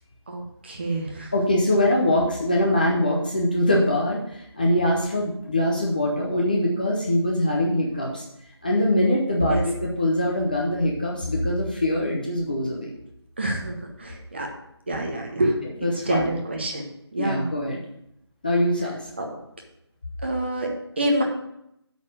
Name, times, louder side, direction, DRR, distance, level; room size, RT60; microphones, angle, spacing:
voice 1, 0.3-1.3 9.4-9.7 13.4-14.5 14.9-17.5 19.2-19.4 20.2-20.7 21.0-21.2, right 1 dB, 25° right, 1 dB, 0.9 m, -27 dB
voice 2, 1.3-8.2 8.6-12.9 15.8-16.3 17.2-17.8 18.4-19.0, left 1 dB, 20° left, -3 dB, 0.6 m, -23 dB
8.4 x 4.1 x 6.4 m, 0.78 s
figure-of-eight pair, 170°, 14 cm